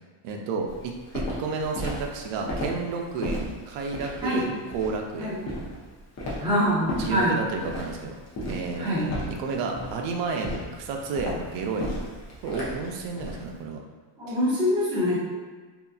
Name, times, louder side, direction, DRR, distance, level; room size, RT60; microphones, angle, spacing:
voice 1, 0.2-5.4 7.0-8.1 8.5-11.9 12.4-13.8 14.3-14.4, right 4 dB, 65° right, 2 dB, 0.5 m, -31 dB
Walk footsteps, 0.7-13.4, equal, 35° left, 0.7 m, -35 dB
voice 2, 6.4-7.3 8.8-9.1 14.2-15.2, equal, 10° right, -10 dB, 0.9 m, -24 dB
2.7 x 2.3 x 2.3 m, 1.4 s
cardioid pair, 125°, 48 cm